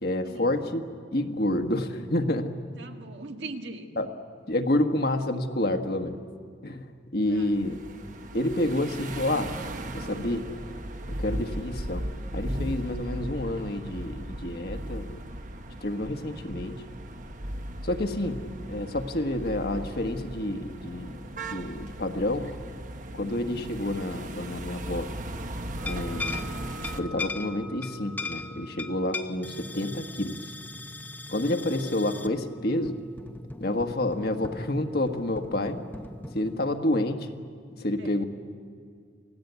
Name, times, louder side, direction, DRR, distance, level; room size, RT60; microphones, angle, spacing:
voice 1, 0.0-0.8 1.1-2.6 4.0-4.1 4.5-6.2 6.6-7.8 8.3-9.5 9.9-10.5 11.1-12.0 12.3-15.1 15.8-16.8 17.8-18.4 18.7-21.1 21.4-22.5 23.1-25.1 25.8-26.5 26.9-30.5 31.3-33.0 33.6-35.8 36.3-37.4 37.8-38.2, left 1 dB, 55° left, 5 dB, 1.4 m, -29 dB
voice 2, 2.8-3.9 7.3-7.6 38.0-38.2, right 3 dB, 70° right, 4 dB, 1.8 m, -40 dB
sound 1, 7.3-27.0, right 1 dB, 40° right, 1.2 m, -37 dB
sound 2, 25.8-36.7, left 3 dB, 10° left, 0.7 m, -39 dB
28.0 x 18.5 x 8.2 m, 2.1 s
head